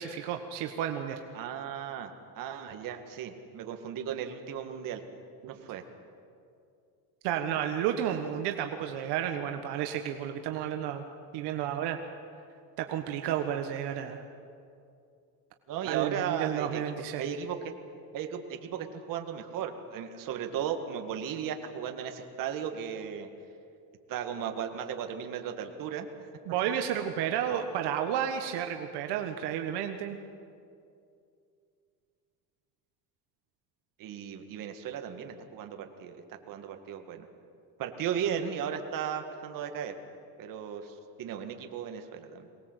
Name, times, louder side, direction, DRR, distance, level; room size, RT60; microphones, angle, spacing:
voice 1, 0.0-1.2 7.2-11.0 11.3-12.0 12.8-14.2 15.8-17.3 26.5-30.2, right 9 dB, 80° right, 5 dB, 1.4 m, -32 dB
voice 2, 1.3-5.0 5.4-5.8 15.7-16.8 17.2-17.6 18.1-23.3 24.1-26.1 34.0-37.3 37.8-39.9 40.4-42.5, right 8 dB, 55° right, 5 dB, 2.0 m, -36 dB
23.0 x 19.0 x 8.1 m, 2.5 s
cardioid pair, 155°, 40 cm